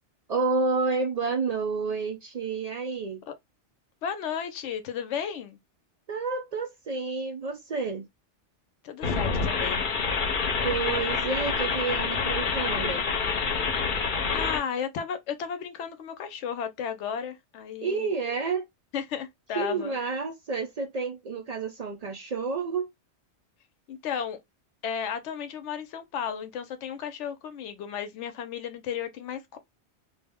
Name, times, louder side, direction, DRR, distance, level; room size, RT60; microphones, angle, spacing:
voice 1, 0.3-3.2 6.1-8.1 10.6-13.1 17.8-18.6 19.6-22.9, right 4 dB, 70° right, 0.3 m, -29 dB
voice 2, 4.0-5.6 8.8-9.8 14.3-18.1 18.9-20.0 23.9-24.4 24.8-29.6, left 7 dB, 85° left, 0.9 m, -34 dB
sound 1, 9.0-14.6, left 5 dB, 50° left, 0.8 m, -27 dB
2.4 x 2.0 x 3.4 m
omnidirectional pair, 1.2 m